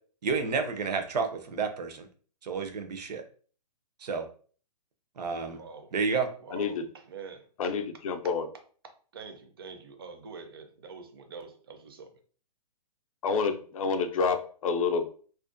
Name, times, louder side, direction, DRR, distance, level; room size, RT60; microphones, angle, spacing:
voice 1, 0.2-2.1 2.4-3.2 4.0-4.3 5.2-5.6 5.9-6.3, right 5 dB, 80° right, 7 dB, 0.6 m, -30 dB
voice 2, 5.5-5.9 6.4-7.7 9.1-12.1, right 5 dB, 35° right, 6 dB, 0.4 m, -45 dB
voice 3, 6.5-6.9 7.6-8.5 13.2-15.1, left 5 dB, 55° left, 7 dB, 0.4 m, -28 dB
2.5 x 2.1 x 2.4 m, 0.42 s
hypercardioid pair, 175°, 21 cm